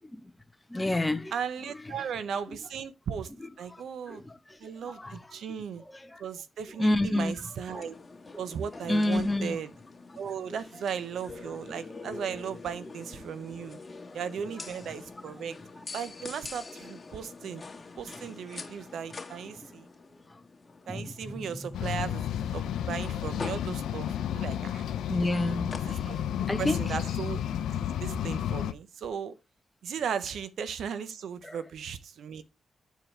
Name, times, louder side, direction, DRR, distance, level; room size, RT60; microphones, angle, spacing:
voice 1, 0.0-0.3 0.7-1.3 1.7-2.1 2.5-2.6 3.7-5.4 5.8-6.2 6.7-7.8 8.8-9.6 10.5-10.6 13.9-14.1 15.8-15.9 18.6-18.7 20.3-20.4 20.9-21.8 25.1-26.2 26.5-27.0 31.4-31.6, left 1 dB, 15° left, 1.1 m, -31 dB
voice 2, 1.3-3.3 3.6-4.2 4.6-5.8 6.2-8.0 8.4-9.7 10.2-13.8 14.1-15.6 15.9-17.6 18.0-19.9 20.9-22.3 22.5-24.8 25.9-27.4 28.0-29.3 29.8-32.4, right 7 dB, 80° right, 0.7 m, -36 dB
sound 1, 7.7-26.6, left 3 dB, 35° left, 1.7 m, -46 dB
sound 2, 21.7-28.7, left 10 dB, 85° left, 0.4 m, -32 dB
8.9 x 4.6 x 3.3 m
supercardioid pair, 50°, 0 cm